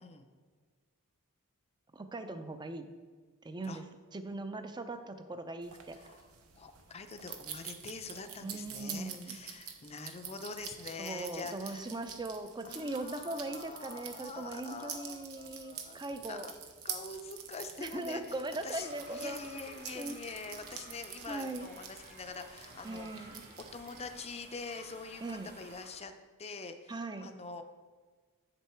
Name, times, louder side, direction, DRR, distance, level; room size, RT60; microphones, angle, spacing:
voice 1, 1.9-2.9 3.4-3.8 4.1-6.0 8.4-9.4 11.0-16.5 17.8-19.4 19.7-20.2 21.3-21.7 22.8-23.4 25.2-25.5 26.9-27.3, right 2 dB, 20° right, 9 dB, 0.5 m, -40 dB
sound 1, 5.6-24.2, right 7 dB, 70° right, 0.8 m, -47 dB
voice 2, 5.9-6.3 6.6-11.9 12.6-16.6 16.8-23.3 23.7-26.1 26.4-27.6, left 4 dB, 30° left, 7 dB, 0.5 m, -45 dB
sound 2, 18.6-25.9, right 2 dB, 45° right, 2.3 m, -54 dB
7.2 x 6.9 x 4.4 m, 1.4 s
head